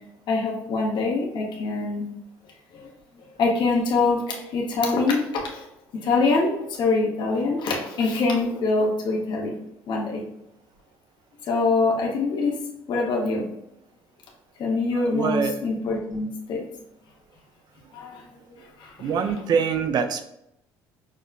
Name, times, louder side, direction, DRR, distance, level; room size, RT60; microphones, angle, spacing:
voice 1, 0.3-2.0 2.8-2.9 3.4-5.7 6.0-9.6 9.9-10.2 11.5-12.6 12.9-13.5 14.6-16.6 17.9-18.3 18.5-19.3, left 3 dB, 55° left, -2 dB, 0.9 m, -24 dB
voice 2, 15.1-15.6 19.0-20.2, right 6 dB, 50° right, 9 dB, 0.4 m, -24 dB
5.3 x 2.1 x 2.4 m, 0.80 s
supercardioid pair, 90°, 9 cm